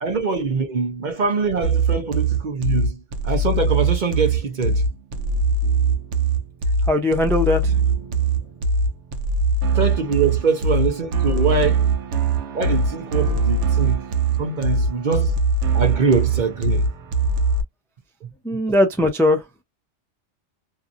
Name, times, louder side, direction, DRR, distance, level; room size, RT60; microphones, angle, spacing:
voice 1, 0.0-4.8 9.7-11.9 12.5-14.1 14.4-15.4 15.7-16.9 18.2-18.6, right 4 dB, 50° right, 0.7 m, -24 dB
sound 1, 1.6-17.6, right 3 dB, 75° right, 0.9 m, -21 dB
voice 2, 6.9-7.7 18.4-19.4, left 1 dB, 5° left, 0.3 m, -19 dB
2.7 x 2.4 x 2.5 m
omnidirectional pair, 1.2 m